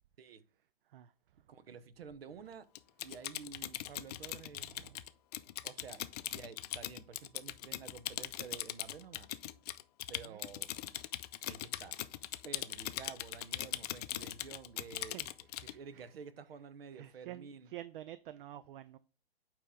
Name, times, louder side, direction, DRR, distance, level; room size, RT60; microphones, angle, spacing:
voice 1, 1.5-2.7 3.0-4.7 5.6-9.3 10.1-10.7 11.4-11.9 12.4-15.2 15.6-17.7, right 6 dB, 80° right, 0.8 m, -50 dB
Typing, 2.7-15.7, left 14 dB, 40° left, 0.4 m, -41 dB
voice 2, 15.6-16.1 16.9-19.0, right 13 dB, 60° right, 0.5 m, -49 dB
8.9 x 3.0 x 3.6 m
hypercardioid pair, 130°, 30 cm